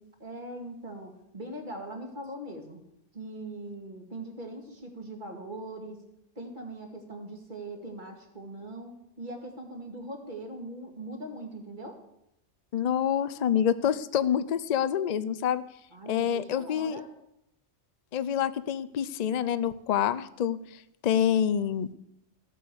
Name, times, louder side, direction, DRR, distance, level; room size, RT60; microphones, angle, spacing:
voice 1, 0.2-2.8 3.1-6.0 6.4-12.0 15.9-17.1, right 1 dB, 40° right, 3 dB, 2.3 m, -41 dB
voice 2, 12.7-15.6 16.1-17.0 18.1-21.9, left 9 dB, 50° left, 15 dB, 0.6 m, -27 dB
14.0 x 8.4 x 6.9 m, 0.81 s
omnidirectional pair, 1.2 m